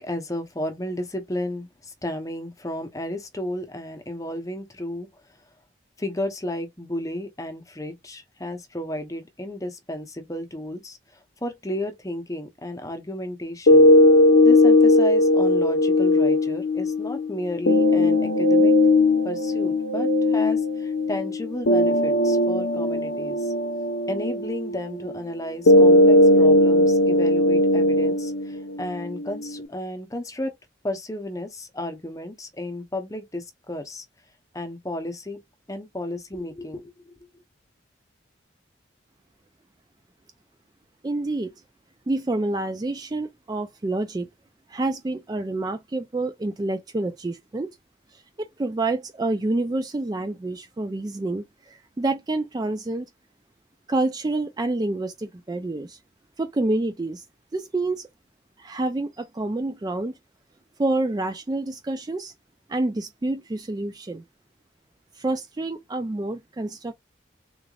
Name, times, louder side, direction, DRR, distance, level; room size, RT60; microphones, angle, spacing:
voice 1, 0.0-5.1 6.0-13.9 14.4-18.7 19.2-23.5 24.1-30.5 30.8-34.0 34.5-35.4 35.7-37.1, left 1 dB, 20° left, 0.8 m, -33 dB
sound 1, 13.7-29.7, left 1 dB, 75° left, 0.7 m, -18 dB
voice 2, 41.0-41.5 42.1-44.3 44.7-47.7 48.1-53.1 53.9-56.0 56.4-57.2 57.5-58.1 58.6-60.2 60.8-62.3 62.7-64.2 65.2-66.9, right 2 dB, 20° right, 0.3 m, -28 dB
3.8 x 3.3 x 2.3 m
head